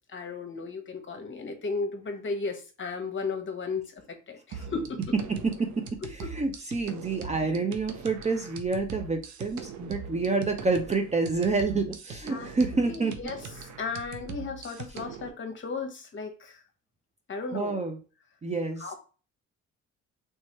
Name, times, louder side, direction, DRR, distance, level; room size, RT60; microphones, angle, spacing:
voice 1, 0.1-3.8 4.3-5.0 12.3-12.5 12.8-16.6 17.3-17.8 18.8-18.9, left 4 dB, 40° left, 5 dB, 1.0 m, -35 dB
sound 1, 4.5-15.3, right 5 dB, 70° right, 0.6 m, -41 dB
voice 2, 5.1-5.9 6.3-13.2 17.5-18.0 18.4-18.8, right 3 dB, 25° right, 5 dB, 0.5 m, -28 dB
3.3 x 3.1 x 2.9 m, 0.35 s
cardioid pair, 90°, 30 cm